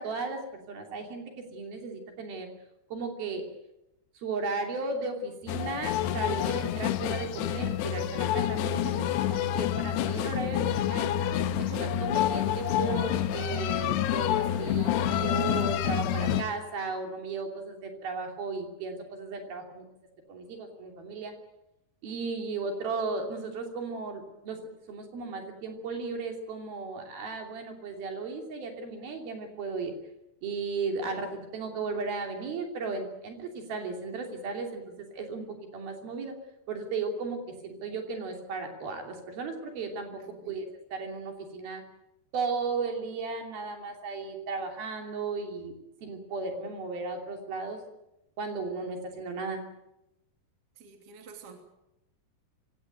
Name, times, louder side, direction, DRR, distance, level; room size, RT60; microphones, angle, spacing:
voice 1, 0.0-2.5 2.9-3.4 4.2-8.9 9.6-11.1 11.5-19.9 20.3-21.3 22.0-24.6 24.9-29.9 30.4-36.3 36.7-41.8 42.3-45.7 46.0-47.8 48.4-49.6, right 4 dB, 60° right, 4 dB, 4.7 m, -35 dB
sound 1, 5.5-16.4, left 10 dB, 85° left, 3.1 m, -28 dB
voice 2, 8.8-9.2 40.2-40.6 50.7-51.6, right 8 dB, 40° right, 5 dB, 3.4 m, -47 dB
24.5 x 17.5 x 9.1 m, 0.91 s
omnidirectional pair, 4.8 m